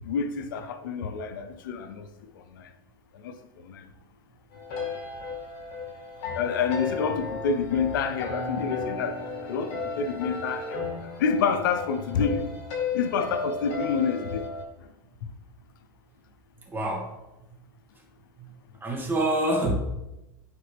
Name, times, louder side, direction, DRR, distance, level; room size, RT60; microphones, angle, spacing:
voice 1, 0.0-2.1 2.3-2.7 3.1-3.9 6.3-12.6 12.9-14.5, left 6 dB, 80° left, 9 dB, 0.6 m, -28 dB
sound 1, 4.5-14.6, left 4 dB, 60° left, 1.8 m, -34 dB
voice 2, 16.7-17.1 18.4-18.5 18.8-19.8, right 1 dB, 20° right, -1 dB, 2.1 m, -26 dB
9.6 x 4.0 x 3.4 m, 0.95 s
hypercardioid pair, 105°, 11 cm